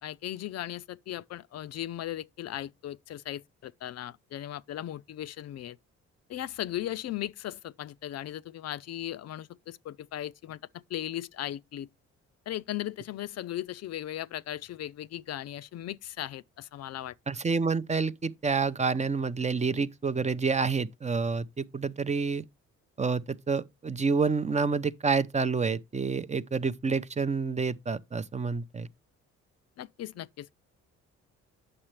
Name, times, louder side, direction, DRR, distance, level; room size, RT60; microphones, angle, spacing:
voice 1, 0.0-5.8 6.3-11.9 12.5-17.2 29.8-30.6, left 12 dB, 60° left, 0.4 m, -37 dB
voice 2, 17.3-22.4 23.0-28.9, right 5 dB, 25° right, 0.6 m, -28 dB
8.8 x 6.5 x 3.2 m
cardioid pair, 90°, 30 cm